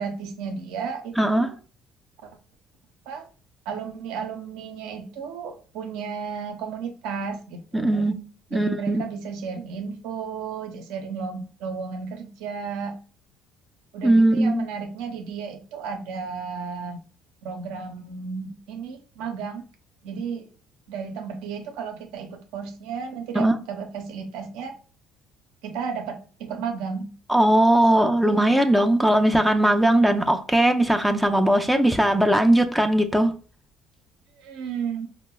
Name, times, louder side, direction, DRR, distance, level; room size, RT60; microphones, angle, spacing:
voice 1, 0.0-1.5 2.2-2.3 3.1-3.3 3.7-8.1 8.5-13.0 13.9-17.0 17.4-19.7 20.0-20.5 20.9-24.8 25.6-27.1 27.7-27.8 28.2-28.4 34.4-35.1, right 6 dB, 80° right, 0.5 m, -33 dB
voice 2, 1.2-1.5 7.7-8.1 8.5-9.0 14.0-14.7 23.3-23.5 27.3-33.3, right 1 dB, ahead, 0.4 m, -19 dB
4.6 x 2.1 x 2.2 m
supercardioid pair, 75°, 0 cm